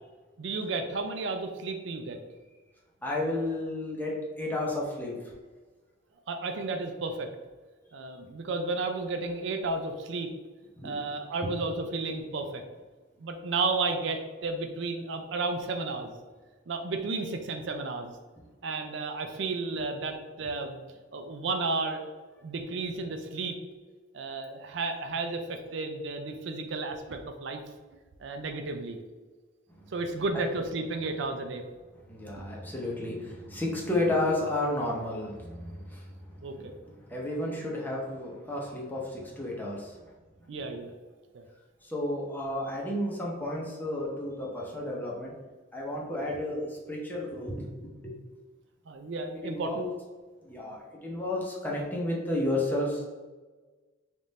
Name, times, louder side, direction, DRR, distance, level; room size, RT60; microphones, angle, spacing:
voice 1, 0.4-2.2 6.3-7.3 7.9-10.3 10.8-12.6 13.2-16.1 16.7-18.1 18.6-20.8 21.1-22.0 22.4-23.6 24.1-27.6 28.2-29.0 29.9-31.6 36.4-36.7 40.5-40.9 41.3-41.4 48.9-49.9, right 3 dB, 65° right, 5 dB, 0.4 m, -32 dB
voice 2, 3.0-5.1 10.8-11.0 11.4-11.5 32.1-36.7 37.1-40.0 41.8-45.3 45.7-48.2 49.4-49.9 50.4-53.1, left 1 dB, 10° left, -3 dB, 0.7 m, -32 dB
3.5 x 2.5 x 4.0 m, 1.3 s
head